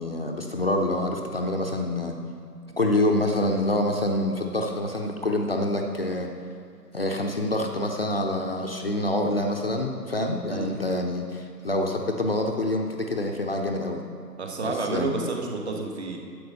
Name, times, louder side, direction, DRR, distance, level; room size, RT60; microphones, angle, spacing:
voice 1, 0.0-2.2 2.8-6.3 6.9-14.0 14.9-15.2, left 1 dB, 35° left, 2 dB, 0.6 m, -26 dB
voice 2, 10.5-10.8 14.4-16.2, right 3 dB, 40° right, 2 dB, 1.4 m, -30 dB
11.5 x 7.7 x 5.4 m, 2.3 s
figure-of-eight pair, 140°, 50 cm